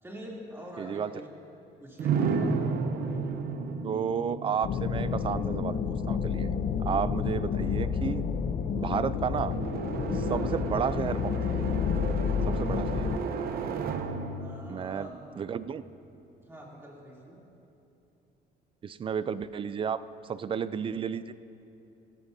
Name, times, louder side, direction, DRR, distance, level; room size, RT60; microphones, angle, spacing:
voice 1, 0.0-1.3 1.8-2.5 10.2-10.4 14.3-15.1 16.4-17.4, equal, 15° right, -3 dB, 2.9 m, -45 dB
voice 2, 0.8-1.1 3.8-6.5 6.8-8.2 8.8-9.5 10.1-11.2 12.5-13.1 14.7-15.1 15.4-15.8 18.8-21.3, right 7 dB, 30° right, 15 dB, 0.4 m, -32 dB
sound 1, 2.0-15.8, right 5 dB, 65° right, 0.9 m, -34 dB
sound 2, 4.6-13.2, left 7 dB, 45° left, 0.6 m, -30 dB
17.5 x 14.0 x 2.7 m, 2.8 s
cardioid pair, 110°, 17 cm